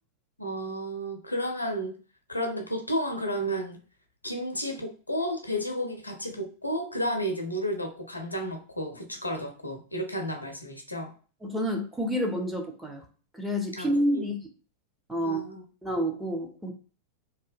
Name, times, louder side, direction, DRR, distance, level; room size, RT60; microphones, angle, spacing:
voice 1, 0.4-2.0 2.3-3.8 4.2-11.1 13.8-13.9 15.2-15.6, equal, 85° left, 4 dB, 0.5 m, -32 dB
voice 2, 11.4-13.0 13.3-14.4 15.1-15.4 15.8-16.7, equal, 5° right, 2 dB, 0.5 m, -29 dB
2.7 x 2.1 x 2.5 m, 0.38 s
figure-of-eight pair, 90°, 0 cm